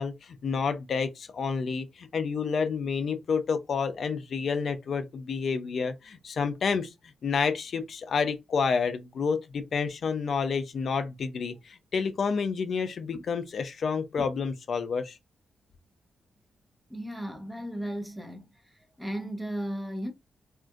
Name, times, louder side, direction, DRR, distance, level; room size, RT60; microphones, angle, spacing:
voice 1, 0.0-6.9 7.2-15.2, left 5 dB, 65° left, 0.6 m, -29 dB
voice 2, 16.9-20.1, right 1 dB, 5° right, 0.9 m, -36 dB
3.6 x 2.5 x 2.5 m
cardioid pair, 65°, 0 cm